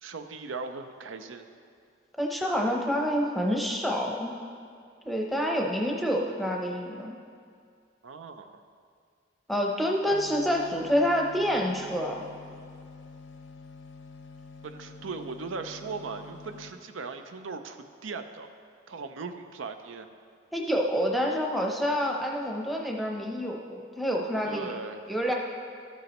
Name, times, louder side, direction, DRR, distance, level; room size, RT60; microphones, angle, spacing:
voice 1, 0.0-1.4 8.0-8.6 14.6-18.5 18.9-20.1 24.4-25.0, right 4 dB, 90° right, 8 dB, 0.5 m, -38 dB
voice 2, 2.2-4.3 5.0-7.1 9.5-12.2 20.5-24.7 25.1-25.3, equal, ahead, 0 dB, 0.7 m, -27 dB
sound 1, 10.1-16.7, left 4 dB, 80° left, 0.6 m, -47 dB
13.0 x 8.2 x 3.0 m, 2.3 s
head